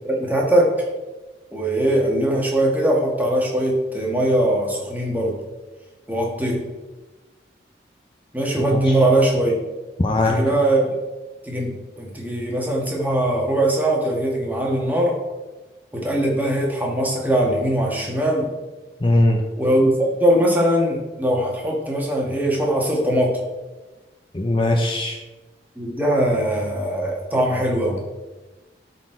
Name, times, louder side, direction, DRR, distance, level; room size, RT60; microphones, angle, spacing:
voice 1, 0.0-0.8 1.5-5.4 6.1-6.6 8.3-9.6 10.3-11.0 11.4-15.2 15.9-18.5 19.6-23.4 25.8-28.0, right 1 dB, 10° right, -2 dB, 1.4 m, -21 dB
voice 2, 8.6-9.0 10.0-10.4 19.0-19.4 24.3-25.2, left 1 dB, 30° left, 3 dB, 0.6 m, -20 dB
12.0 x 4.1 x 4.5 m, 1.2 s
head